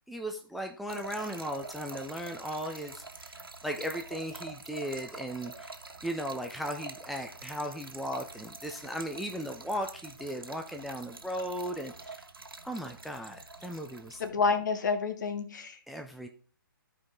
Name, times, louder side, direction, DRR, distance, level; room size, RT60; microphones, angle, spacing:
voice 1, 0.0-3.4 3.6-5.7 6.0-12.2 12.6-14.2 15.9-16.3, equal, ahead, 3 dB, 0.4 m, -37 dB
Trickle dribble / Fill (with liquid), 0.9-14.3, right 3 dB, 85° right, 1.3 m, -46 dB
voice 2, 14.2-15.8, left 5 dB, 55° left, 8 dB, 1.3 m, -29 dB
13.5 x 4.9 x 3.7 m, 0.40 s
figure-of-eight pair, 135°, 12 cm